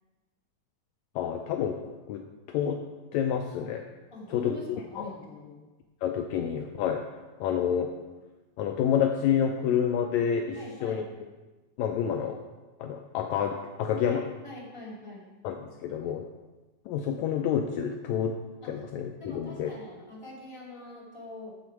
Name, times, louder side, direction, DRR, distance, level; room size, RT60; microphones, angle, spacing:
voice 1, 1.1-1.8 2.1-2.2 2.5-2.8 3.1-3.8 4.3-4.6 5.0-5.1 6.0-7.0 7.4-7.9 8.6-11.0 11.8-12.4 12.8-14.2 15.4-16.2 16.9-18.4 18.7-19.7, left 8 dB, 85° left, 5 dB, 1.6 m, -28 dB
voice 2, 4.1-5.6 10.5-11.1 14.1-15.3 18.6-18.8 19.2-21.5, left 2 dB, 10° left, -6 dB, 2.2 m, -44 dB
9.5 x 7.1 x 4.6 m, 1.2 s
omnidirectional pair, 3.7 m